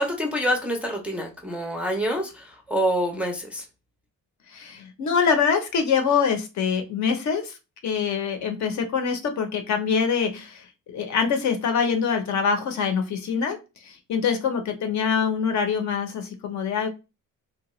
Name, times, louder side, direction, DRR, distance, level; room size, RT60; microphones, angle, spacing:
voice 1, 0.0-3.6, equal, 5° right, 0 dB, 0.4 m, -26 dB
voice 2, 4.5-7.6 7.8-13.6 13.8-16.9, left 6 dB, 55° left, 6 dB, 0.6 m, -24 dB
2.8 x 2.2 x 3.0 m, 0.28 s
cardioid pair, 150°, 33 cm